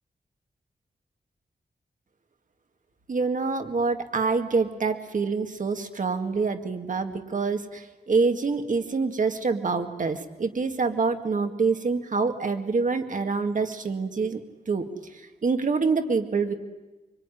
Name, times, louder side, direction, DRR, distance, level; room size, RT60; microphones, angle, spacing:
voice 1, 3.1-14.4 14.7-14.9 15.1-16.5, right 4 dB, 50° right, 7 dB, 2.0 m, -26 dB
24.5 x 24.5 x 10.0 m, 1.1 s
wide cardioid pair, 150°, 16 cm